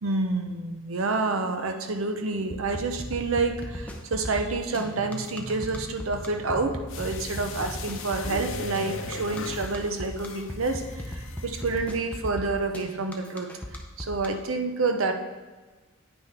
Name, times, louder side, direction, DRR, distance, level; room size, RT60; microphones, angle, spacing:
voice 1, 0.0-10.8 11.4-13.5 14.0-15.1, right 3 dB, 75° right, 6 dB, 0.7 m, -28 dB
sound 1, 2.5-14.3, equal, 5° left, 0.6 m, -37 dB
sound 2, 6.9-11.9 12.3-12.4, left 3 dB, 65° left, 0.7 m, -39 dB
8.9 x 5.7 x 3.4 m, 1.3 s
head